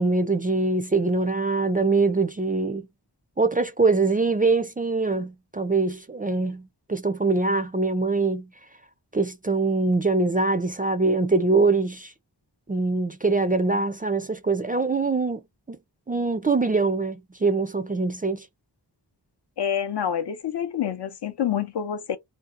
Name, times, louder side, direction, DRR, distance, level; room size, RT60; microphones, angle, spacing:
voice 1, 0.0-2.9 3.4-8.5 9.1-12.1 12.7-15.4 15.7-15.8 16.1-18.5, right 3 dB, 20° right, 0.3 m, -23 dB
voice 2, 19.6-22.2, left 9 dB, 70° left, 0.6 m, -27 dB
2.7 x 2.1 x 2.4 m
wide cardioid pair, 65°, 43 cm